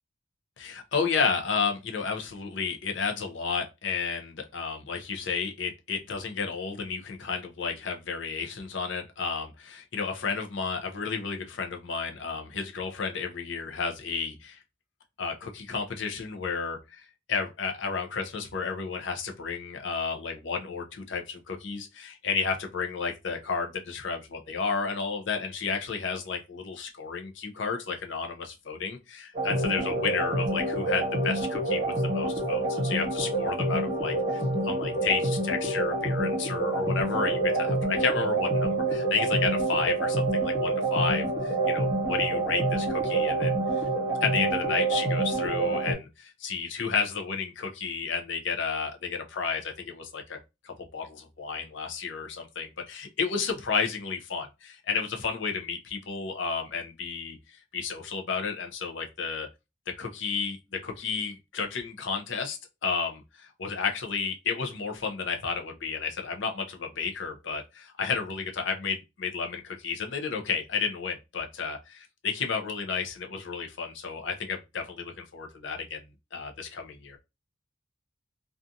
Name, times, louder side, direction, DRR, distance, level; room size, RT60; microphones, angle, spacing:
voice 1, 0.6-14.6 15.2-43.6 44.2-50.4 50.6-59.5 60.0-60.6 60.8-76.0 76.3-77.2, left 5 dB, 65° left, 0.6 m, -32 dB
sound 1, 29.3-45.9, right 2 dB, 35° right, 1.0 m, -27 dB
2.4 x 2.4 x 2.6 m
head